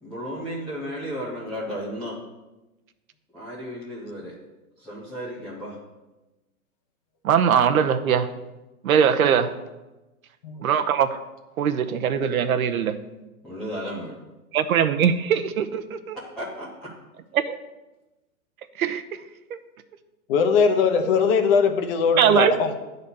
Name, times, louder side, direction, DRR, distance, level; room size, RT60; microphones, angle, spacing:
voice 1, 0.0-2.2 3.3-4.4 4.8-5.8 13.4-14.2 16.1-16.9, equal, ahead, -9 dB, 0.3 m, -34 dB
voice 2, 7.2-8.3 8.8-9.6 10.6-11.2 11.6-13.0 14.5-16.2 17.3-17.6 18.8-19.2 19.5-19.6 22.2-22.5, right 8 dB, 70° right, 9 dB, 0.9 m, -21 dB
voice 3, 20.3-22.7, left 5 dB, 40° left, 6 dB, 1.1 m, -20 dB
9.7 x 4.1 x 6.9 m, 1.1 s
hypercardioid pair, 135°, 43 cm